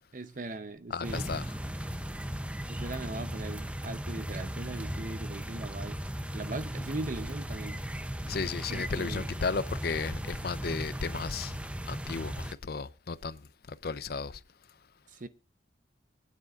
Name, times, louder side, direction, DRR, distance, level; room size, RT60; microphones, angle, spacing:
voice 1, 0.1-1.3 2.7-6.0 6.3-7.8 8.7-9.3 15.1-15.3, right 2 dB, 45° right, 0.7 m, -39 dB
voice 2, 0.9-1.6 8.3-11.6 11.9-13.4 13.7-14.4, left 4 dB, 55° left, 0.5 m, -34 dB
sound 1, 1.0-12.5, equal, 5° right, 0.6 m, -37 dB
23.0 x 9.6 x 2.4 m
head